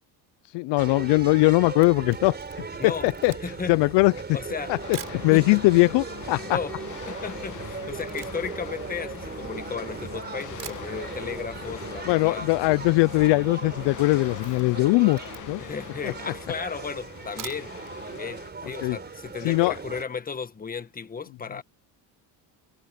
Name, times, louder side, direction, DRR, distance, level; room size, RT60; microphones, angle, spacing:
voice 1, 0.5-2.4 2.8-3.3 3.7-4.1 4.7-6.6 12.1-15.2 15.5-15.6 16.0-16.1 18.8-19.0 19.4-19.7, left 22 dB, 75° left, 0.5 m, -21 dB
sound 1, 0.8-20.0, right 5 dB, 25° right, 4.4 m, -38 dB
Camera, 1.6-5.3 6.0-6.1 6.2-9.9 10.3-10.4 10.6-11.4 11.7-11.8 12.1-12.2 12.4-12.8 13.1-13.4 13.7-15.8 16.3-16.4 17.2-18.0 18.3-18.4 18.8-18.9, right 10 dB, 45° right, 4.2 m, -46 dB
voice 2, 3.4-3.8 4.3-4.8 5.3-5.6 6.5-6.8 7.1-12.5 15.6-17.7 18.0-21.6, left 5 dB, 20° left, 1.4 m, -34 dB
sound 2, 4.8-18.5, left 10 dB, 45° left, 1.2 m, -43 dB
cardioid pair, 140°, 44 cm